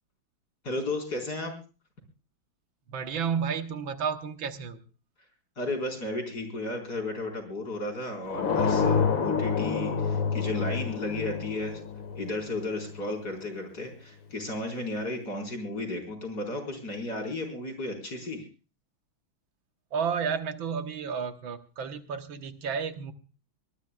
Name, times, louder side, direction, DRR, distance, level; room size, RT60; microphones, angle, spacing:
voice 1, 0.6-1.5 5.6-11.8 12.2-18.4, left 2 dB, 50° left, 4 dB, 5.1 m, -34 dB
voice 2, 2.9-4.8 19.9-23.1, right 6 dB, 75° right, 8 dB, 1.9 m, -31 dB
sound 1, 8.3-13.0, left 6 dB, 70° left, 2.5 m, -28 dB
23.0 x 19.5 x 2.3 m, 0.35 s
omnidirectional pair, 2.2 m